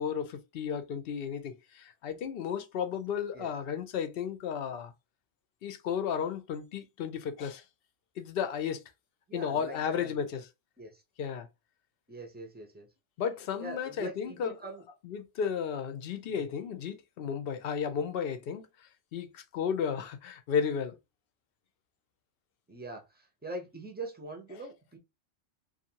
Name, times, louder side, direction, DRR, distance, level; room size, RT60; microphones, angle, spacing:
voice 1, 0.0-4.9 5.6-7.6 8.2-8.8 9.3-10.4 11.2-11.5 13.2-14.5 15.0-18.7 19.1-21.0, left 7 dB, 65° left, 0.7 m, -33 dB
voice 2, 9.3-10.3 10.8-11.0 12.1-12.9 13.6-14.8 20.0-20.1 22.7-25.0, right 2 dB, 15° right, 0.4 m, -43 dB
2.6 x 2.4 x 2.7 m
omnidirectional pair, 1.2 m